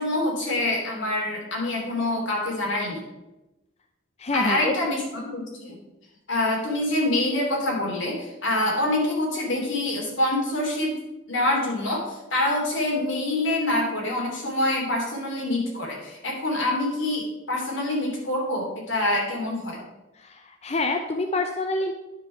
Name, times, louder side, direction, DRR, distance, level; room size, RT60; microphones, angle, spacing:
voice 1, 0.0-3.0 4.3-5.8 6.3-10.9 11.3-19.8, left 1 dB, 75° left, -2 dB, 3.2 m, -26 dB
voice 2, 4.2-4.7 20.2-21.9, left 2 dB, 35° left, 4 dB, 0.6 m, -26 dB
10.0 x 5.1 x 5.8 m, 1.0 s
head